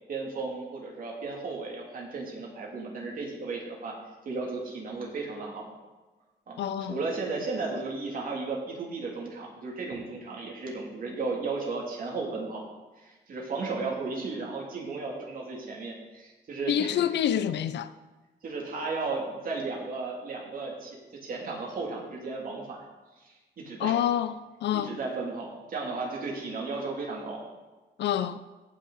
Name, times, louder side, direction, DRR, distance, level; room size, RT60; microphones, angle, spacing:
voice 1, 0.1-3.9 4.2-5.7 6.5-6.6 6.9-12.6 13.0-17.0 18.4-22.8 23.2-24.0 24.7-27.4, right 3 dB, 50° right, 3.1 m, -34 dB
voice 2, 6.6-7.0 16.7-17.9 23.8-24.9 28.0-28.4, left 10 dB, 75° left, 0.5 m, -27 dB
17.0 x 6.4 x 4.1 m
wide cardioid pair, 145°, 18 cm